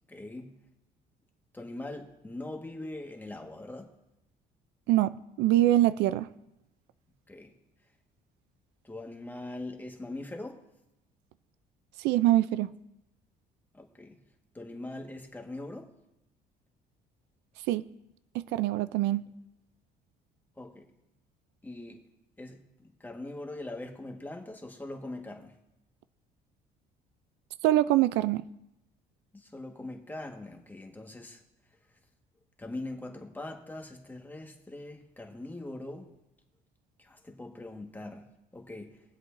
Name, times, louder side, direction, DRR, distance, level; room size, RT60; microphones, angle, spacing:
voice 1, 0.1-0.6 1.5-4.0 7.3-7.5 8.8-10.7 13.7-14.2 14.5-15.9 20.6-20.9 21.6-22.1 22.4-25.6 29.3-31.4 32.6-36.1 37.0-38.3 38.5-39.0, left 2 dB, 10° left, 1.5 m, -42 dB
voice 2, 5.4-6.3 12.0-12.7 17.7-17.8 18.3-19.2 27.6-28.4, right 14 dB, 90° right, 0.4 m, -24 dB
22.5 x 7.9 x 2.6 m
cardioid pair, 110°, 17 cm